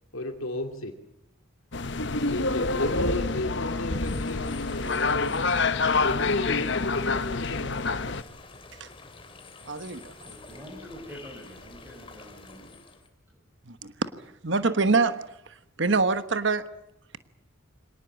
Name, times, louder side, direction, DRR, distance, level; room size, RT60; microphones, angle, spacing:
voice 1, 0.1-0.9 2.3-5.3 6.0-8.0, left 1 dB, 75° left, 4 dB, 2.4 m, -32 dB
sound 1, 1.7-8.2, left 3 dB, 55° left, 1.0 m, -27 dB
sound 2, 4.0-13.1, left 3 dB, 25° left, 3.1 m, -48 dB
voice 2, 9.7-10.1 13.7-14.1 14.4-15.2 15.5-16.6, right 4 dB, 55° right, 11 dB, 1.2 m, -25 dB
voice 3, 10.2-12.7, equal, 10° right, 1 dB, 4.7 m, -46 dB
25.5 x 18.5 x 8.6 m, 0.83 s
head